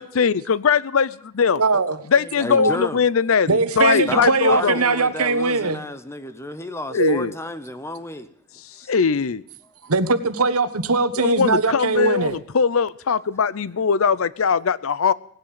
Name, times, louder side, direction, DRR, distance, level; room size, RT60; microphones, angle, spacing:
voice 1, 0.0-1.6 2.1-4.8 6.9-7.3 8.9-9.4 11.2-15.1, left 6 dB, 65° left, 0.5 m, -20 dB
voice 2, 1.5-2.0 2.5-2.7 3.5-5.8 7.0-7.2 9.9-12.4, right 3 dB, 80° right, 1.3 m, -20 dB
voice 3, 2.1-3.0 3.9-8.3 8.8-8.9, left 1 dB, 10° left, 0.9 m, -32 dB
18.0 x 10.5 x 7.5 m
head